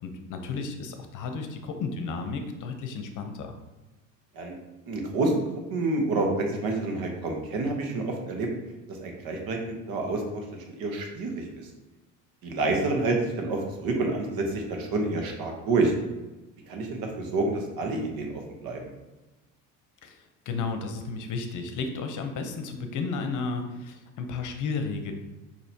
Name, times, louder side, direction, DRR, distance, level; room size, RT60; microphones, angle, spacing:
voice 1, 0.0-3.5 20.0-25.1, left 4 dB, 50° left, 6 dB, 0.8 m, -33 dB
voice 2, 4.9-5.3 5.7-8.5 8.9-9.6 9.9-10.4 10.8-11.7 12.4-15.9 16.7-18.9, right 3 dB, 65° right, 2 dB, 1.2 m, -28 dB
6.3 x 2.9 x 2.8 m, 1.1 s
supercardioid pair, 75°, 39 cm